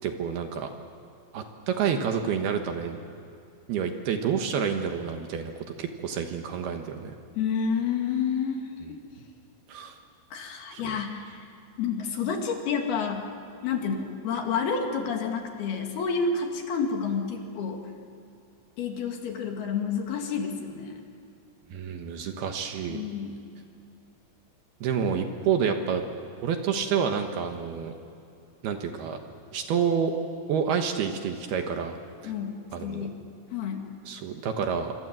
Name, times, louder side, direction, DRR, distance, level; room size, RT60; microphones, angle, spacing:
voice 1, 0.0-0.7 1.3-3.0 3.7-5.5 5.8-7.1 9.7-10.0 10.7-11.0 21.7-23.0 24.8-26.0 26.4-27.9 28.6-29.2 29.5-30.1 30.5-32.0 32.2-32.3 32.7-33.1 34.1-34.9, right 7 dB, 70° right, 5 dB, 3.0 m, -28 dB
voice 2, 7.4-8.7 10.3-11.5 11.8-13.3 13.6-17.9 18.8-21.0 22.9-23.4 32.2-33.2 33.5-33.9, left 6 dB, 65° left, 3 dB, 3.7 m, -29 dB
26.5 x 25.0 x 7.6 m, 2.7 s
omnidirectional pair, 5.3 m